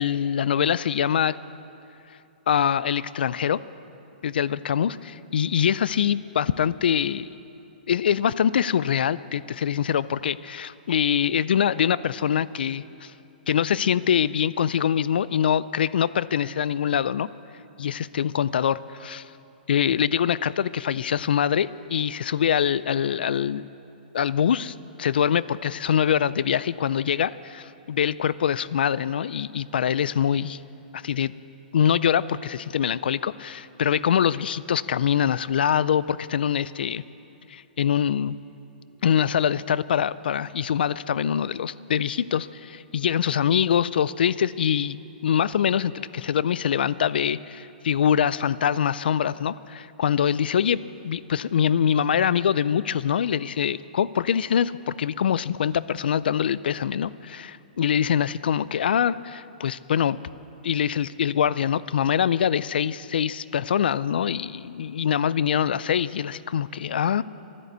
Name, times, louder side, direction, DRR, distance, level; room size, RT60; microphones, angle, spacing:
voice 1, 0.0-1.4 2.5-3.6 4.2-7.4 7.9-13.1 13.5-17.3 17.8-19.2 19.7-23.7 24.1-30.6 30.9-31.3 31.7-37.0 37.5-38.4 39.0-45.0 45.2-60.2 60.6-67.2, left 8 dB, 80° left, 19 dB, 0.4 m, -24 dB
13.0 x 11.0 x 8.0 m, 2.9 s
hypercardioid pair, 170°, 5 cm